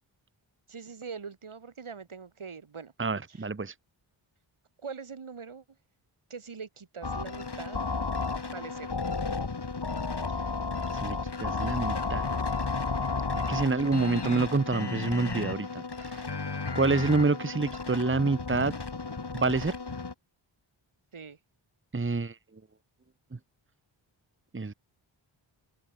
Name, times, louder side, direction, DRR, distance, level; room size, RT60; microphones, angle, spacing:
voice 1, 0.7-2.9 3.3-3.5 4.8-5.6 6.3-7.8 8.5-8.9 21.1-21.4, right 5 dB, 75° right, 8.0 m, -42 dB
voice 2, 3.0-3.7 10.9-12.5 13.3-16.2 16.7-18.7 19.3-19.7 21.9-22.4 23.3-23.4 24.5-24.7, right 3 dB, 25° right, 1.3 m, -28 dB
sound 1, 7.0-20.1, left 4 dB, 50° left, 6.5 m, -33 dB
open air
cardioid pair, 45°, 50 cm